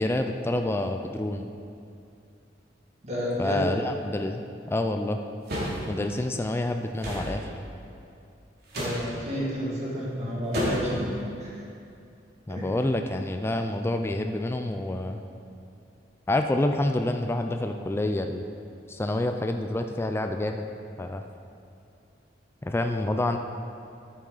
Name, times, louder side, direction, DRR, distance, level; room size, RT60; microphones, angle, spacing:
voice 1, 0.0-1.5 3.4-4.4 4.7-5.2 5.9-7.5 12.5-15.2 16.3-18.4 18.9-20.7 21.0-21.2 22.6-23.4, left 1 dB, 15° left, 5 dB, 0.3 m, -27 dB
voice 2, 3.0-3.7 8.8-11.1 11.4-11.5 12.5-12.6, equal, 40° right, -6 dB, 2.1 m, -31 dB
sound 1, 5.5-5.8 7.0-7.3 8.7-9.0 10.5-11.0, equal, 60° right, 2.6 m, -29 dB
10.5 x 8.3 x 4.0 m, 2.6 s
head